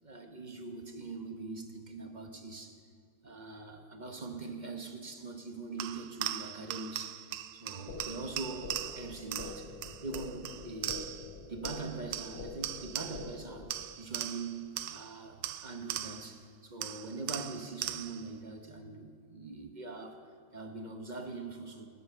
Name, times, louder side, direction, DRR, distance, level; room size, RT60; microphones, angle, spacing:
voice 1, 0.0-2.8 3.2-7.2 7.5-9.7 10.0-11.1 11.5-21.9, right 3 dB, 30° right, 5 dB, 0.9 m, -43 dB
sound 1, 5.8-11.3 11.6-13.4 13.7-16.4 16.8-18.3, right 12 dB, 75° right, 1.2 m, -40 dB
sound 2, 7.9-13.9, left 4 dB, 50° left, 0.7 m, -46 dB
21.5 x 8.4 x 6.7 m, 2.2 s
omnidirectional pair, 2.0 m